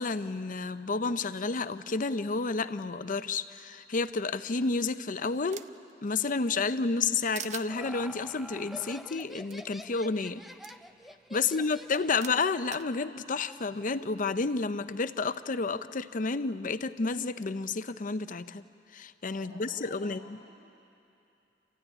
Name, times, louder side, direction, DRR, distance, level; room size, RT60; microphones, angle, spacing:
voice 1, 0.0-5.6 6.0-10.4 11.3-18.6 18.9-20.4, left 4 dB, 45° left, 12 dB, 0.7 m, -30 dB
sound 1, 4.5-5.9 6.3-7.1 7.3-7.7 9.2-9.3 9.5-9.6 10.6-10.7 11.7-12.9, right 8 dB, 40° right, 0.6 m, -44 dB
Laughter, 7.2-12.4, equal, ahead, 0.6 m, -46 dB
voice 2, 19.3-20.5, equal, 70° right, -3 dB, 6.6 m, -53 dB
29.0 x 14.5 x 9.9 m, 2.7 s
head